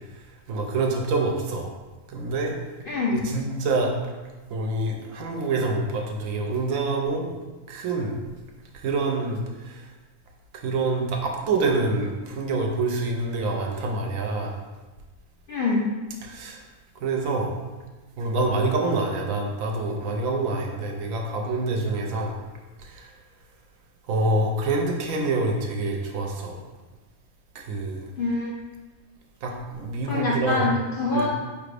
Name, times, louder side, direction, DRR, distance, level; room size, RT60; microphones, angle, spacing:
voice 1, 0.5-1.7 2.1-2.6 3.1-3.9 4.5-7.3 7.7-8.2 8.7-9.8 10.5-14.6 16.2-16.6 17.0-17.5 18.2-22.4 22.8-23.1 24.1-26.6 27.5-28.1 29.4-30.7 31.1-31.3, right 3 dB, 75° right, 1 dB, 1.0 m, -26 dB
voice 2, 2.9-3.2 15.5-15.8 28.2-28.6 30.1-31.3, left 3 dB, 70° left, -3 dB, 0.5 m, -25 dB
4.9 x 2.5 x 3.3 m, 1.2 s
omnidirectional pair, 1.4 m